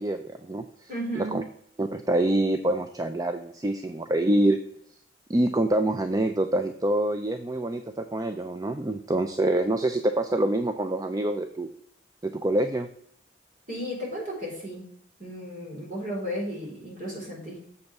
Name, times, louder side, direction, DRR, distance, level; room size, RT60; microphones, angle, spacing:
voice 1, 0.0-0.9 1.2-1.4 1.8-4.6 5.3-11.7 12.2-12.9, right 1 dB, 20° right, 8 dB, 0.4 m, -26 dB
voice 2, 0.9-1.4 13.7-14.9 15.2-17.6, equal, 45° right, -3 dB, 3.8 m, -34 dB
7.1 x 5.3 x 5.9 m, 0.67 s
head